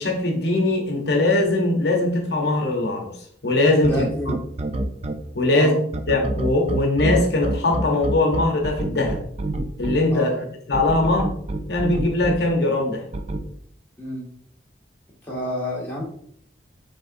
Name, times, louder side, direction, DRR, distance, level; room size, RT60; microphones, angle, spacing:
voice 1, 0.0-3.1 3.4-4.0 5.3-9.2 9.8-11.3 11.7-13.0, left 2 dB, 65° left, 1 dB, 0.8 m, -21 dB
voice 2, 3.8-4.4 5.5-5.8 10.1-10.4 14.0-14.2 15.2-16.0, equal, 10° left, -5 dB, 1.2 m, -28 dB
sound 1, 3.8-5.1 5.9-9.9 10.7-12.3 13.1-13.4, right 1 dB, 35° right, 0.4 m, -26 dB
5.3 x 3.6 x 2.5 m, 0.63 s
head